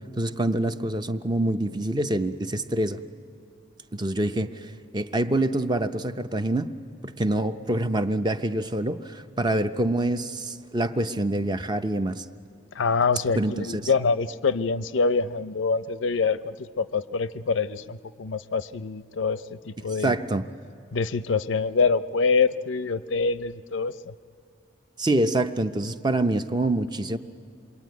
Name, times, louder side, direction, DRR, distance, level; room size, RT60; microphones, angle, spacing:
voice 1, 0.2-3.0 3.9-6.7 7.0-12.2 13.4-13.8 20.0-20.4 25.0-27.2, right 1 dB, 20° right, 9 dB, 0.6 m, -26 dB
voice 2, 12.7-20.2 20.9-24.1, left 4 dB, 80° left, 14 dB, 0.6 m, -25 dB
26.5 x 22.5 x 9.4 m, 2.4 s
head